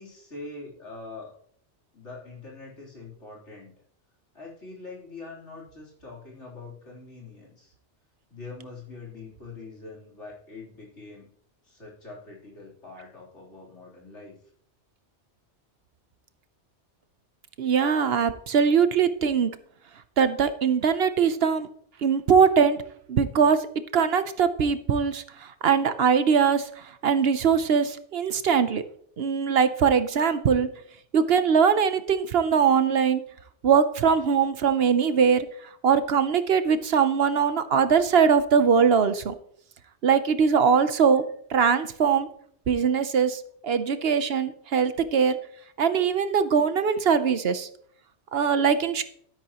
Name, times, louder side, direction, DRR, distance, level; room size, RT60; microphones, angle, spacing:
voice 1, 0.0-1.3 1.9-3.7 4.3-7.7 8.3-11.3 11.6-14.4, left 3 dB, 85° left, -5 dB, 3.8 m, -43 dB
voice 2, 17.6-19.5 20.2-21.7 22.0-22.8 23.1-23.7 23.9-25.2 25.6-26.7 27.0-28.8 29.2-30.7 31.1-33.2 33.6-35.5 35.8-39.3 40.0-41.2 41.5-42.3 42.7-45.4 45.8-47.7 48.3-49.0, right 6 dB, 60° right, 11 dB, 1.0 m, -21 dB
12.0 x 10.5 x 3.0 m, 0.63 s
omnidirectional pair, 1.2 m